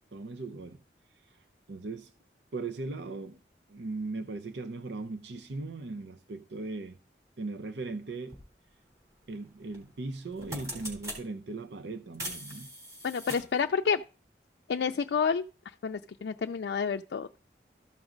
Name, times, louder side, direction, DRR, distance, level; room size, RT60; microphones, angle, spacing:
voice 1, 0.1-0.8 1.3-2.1 2.5-3.4 3.7-7.0 7.4-8.4 9.3-12.7, right 3 dB, 85° right, 0.6 m, -38 dB
sound 1, 8.3-8.4 9.7-9.9 10.2-11.2 12.1-13.6, equal, 20° right, 3.6 m, -40 dB
voice 2, 13.0-14.0 14.7-15.4 15.8-17.4, left 6 dB, 80° left, 0.4 m, -29 dB
14.0 x 6.1 x 3.9 m
head